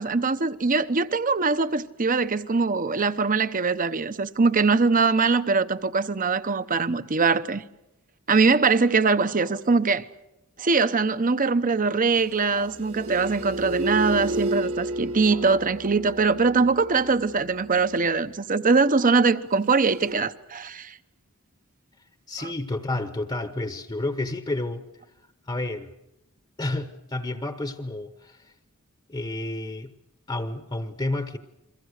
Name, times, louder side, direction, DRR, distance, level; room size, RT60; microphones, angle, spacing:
voice 1, 0.0-7.6 8.3-10.0 10.6-21.0 22.4-22.5, right 4 dB, 40° right, 0.9 m, -22 dB
sound 1, 12.2-18.2 19.8-20.1, right 1 dB, 70° right, 1.7 m, -32 dB
voice 2, 22.3-24.8 25.5-25.9 26.6-28.4 29.1-29.9 30.3-31.4, left 2 dB, 20° left, 1.0 m, -30 dB
30.0 x 23.0 x 6.6 m
head